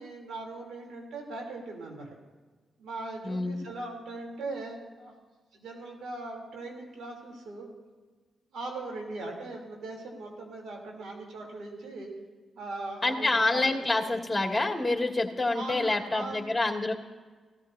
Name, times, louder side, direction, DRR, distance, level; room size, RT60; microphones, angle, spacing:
voice 1, 0.0-2.2 2.8-5.1 5.5-7.7 8.5-12.1 12.5-13.6 14.0-14.1 15.5-16.5, right 2 dB, 75° right, 0 dB, 3.5 m, -39 dB
voice 2, 3.2-3.6 13.0-16.9, left 2 dB, 15° left, 0 dB, 2.5 m, -27 dB
17.0 x 14.0 x 2.8 m, 1.4 s
supercardioid pair, 45°, 0 cm